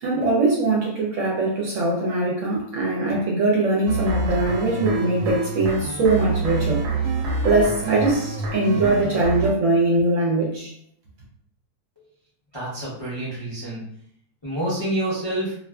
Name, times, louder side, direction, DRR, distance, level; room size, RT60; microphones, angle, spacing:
voice 1, 0.0-6.8 7.4-10.7, right 2 dB, 65° right, -3 dB, 0.9 m, -21 dB
sound 1, 3.9-9.5, right 2 dB, 85° right, 1.1 m, -26 dB
voice 2, 12.5-13.8 14.4-15.5, right 1 dB, 30° left, -9 dB, 0.5 m, -27 dB
2.5 x 2.5 x 2.2 m, 0.66 s
omnidirectional pair, 1.7 m